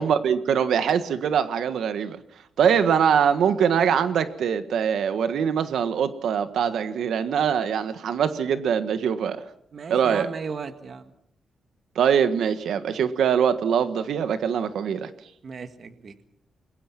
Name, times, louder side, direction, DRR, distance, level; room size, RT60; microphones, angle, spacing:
voice 1, 0.0-2.2 2.6-9.4 9.9-10.3 11.9-15.1, right 7 dB, 80° right, 10 dB, 1.5 m, -23 dB
voice 2, 9.7-11.1 15.4-16.1, right 5 dB, 40° right, 9 dB, 1.6 m, -35 dB
28.5 x 22.5 x 6.0 m, 0.67 s
wide cardioid pair, 180°, 0 cm